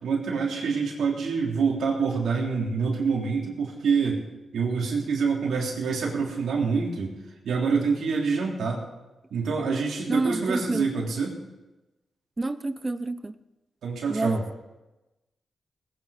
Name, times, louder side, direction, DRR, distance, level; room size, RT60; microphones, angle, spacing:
voice 1, 0.0-4.2 4.5-7.1 7.4-8.8 9.3-11.3 13.8-14.4, right 5 dB, 80° right, -1 dB, 3.5 m, -26 dB
voice 2, 10.1-10.9 12.4-13.3 14.1-14.4, right 2 dB, 25° right, 14 dB, 0.7 m, -28 dB
19.5 x 9.6 x 5.1 m, 1.0 s
cardioid pair, 70°, 0 cm